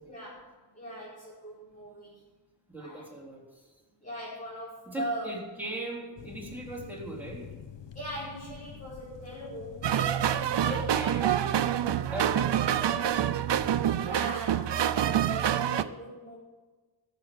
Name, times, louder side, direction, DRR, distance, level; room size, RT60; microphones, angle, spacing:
voice 1, 0.0-2.2 2.8-3.1 4.0-5.4 7.9-11.2 14.0-16.4, equal, 20° left, -9 dB, 5.2 m, -40 dB
voice 2, 2.7-3.7 4.9-7.5 10.6-11.7 12.0-13.7, right 1 dB, 5° right, -3 dB, 3.6 m, -40 dB
sound 1, 6.2-14.3, left 7 dB, 75° left, 0.9 m, -47 dB
sound 2, 9.8-15.8, right 10 dB, 75° right, 0.7 m, -26 dB
14.0 x 7.0 x 7.8 m, 1.3 s
wide cardioid pair, 110°, 43 cm